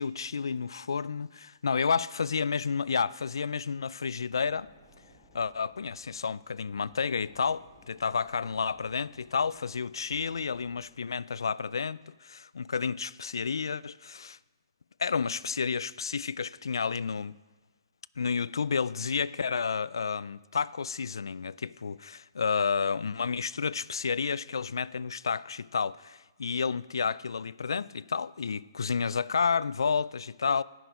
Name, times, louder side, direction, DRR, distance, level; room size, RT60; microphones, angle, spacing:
voice 1, 0.0-4.7 5.3-14.4 15.0-17.3 18.2-30.6, left 5 dB, 90° left, 0.3 m, -31 dB
sound 1, 4.3-10.8, left 2 dB, 30° left, 4.5 m, -59 dB
18.0 x 6.2 x 4.8 m
hypercardioid pair, 145°, 2 cm